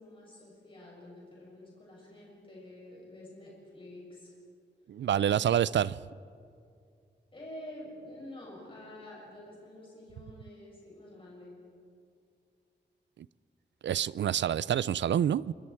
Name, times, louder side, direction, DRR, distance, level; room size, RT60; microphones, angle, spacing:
voice 1, 0.0-4.3 7.3-11.6, left 1 dB, 30° left, 6.7 m, -48 dB
voice 2, 4.9-6.0 13.8-15.5, right 10 dB, 75° right, 0.4 m, -27 dB
27.0 x 25.0 x 4.7 m
wide cardioid pair, 175°, 19 cm